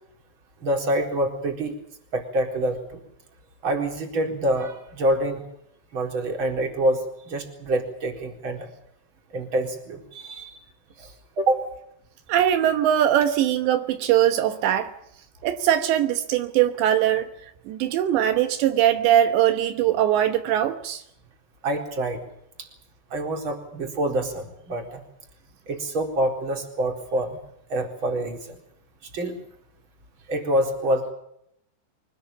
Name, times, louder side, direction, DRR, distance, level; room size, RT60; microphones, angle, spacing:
voice 1, 0.6-1.8 2.1-3.0 3.6-5.4 5.9-8.7 9.3-10.6 11.0-11.6 21.6-22.2 22.6-22.7 23.1-25.0 25.7-27.4 27.7-28.6 29.0-29.4 30.3-31.1, right 1 dB, 30° right, 4.5 m, -26 dB
voice 2, 12.3-14.9 15.4-17.3 17.7-21.0, right 11 dB, 80° right, 3.3 m, -21 dB
25.0 x 20.5 x 7.3 m
omnidirectional pair, 5.1 m